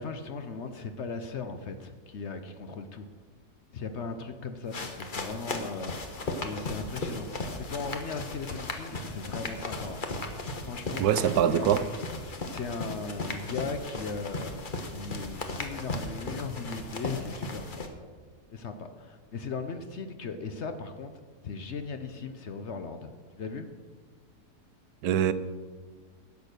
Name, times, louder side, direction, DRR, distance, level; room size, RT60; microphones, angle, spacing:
voice 1, 0.0-3.1 3.7-10.0 10.6-11.8 12.2-17.9 18.5-23.7, left 4 dB, 55° left, 8 dB, 0.9 m, -38 dB
sound 1, 4.7-17.9, left 2 dB, 35° left, 1.1 m, -36 dB
voice 2, 11.0-11.9 25.0-25.3, right 10 dB, 80° right, 13 dB, 1.1 m, -23 dB
10.5 x 8.1 x 6.7 m, 1.5 s
omnidirectional pair, 1.6 m